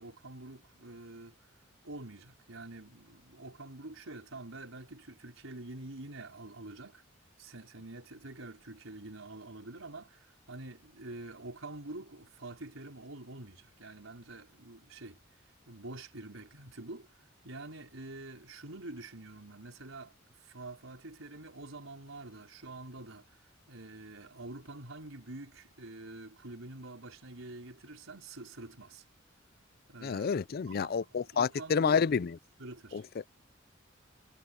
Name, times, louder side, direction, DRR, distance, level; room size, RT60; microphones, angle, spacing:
voice 1, 0.0-1.3 1.8-7.0 7.4-15.2 15.7-17.1 17.4-20.1 20.4-23.4 23.7-29.0 29.9-30.3 30.6-32.0 32.6-33.0, right 2 dB, 85° right, 4.9 m, -46 dB
voice 2, 30.0-32.3 32.9-33.0, left 6 dB, 50° left, 0.4 m, -29 dB
head